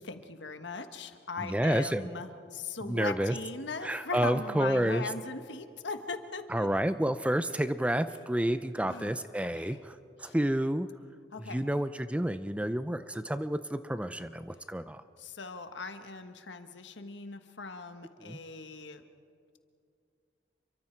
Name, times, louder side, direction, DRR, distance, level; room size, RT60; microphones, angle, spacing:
voice 1, 0.0-6.7 8.9-9.8 10.2-10.3 11.3-11.6 15.2-19.0, left 4 dB, 85° left, 8 dB, 1.4 m, -40 dB
voice 2, 1.4-2.1 2.8-3.4 3.8-5.1 6.5-10.9 11.4-15.0 18.2-18.4, right 1 dB, 5° right, 11 dB, 0.5 m, -30 dB
29.0 x 24.0 x 4.6 m, 2.4 s
head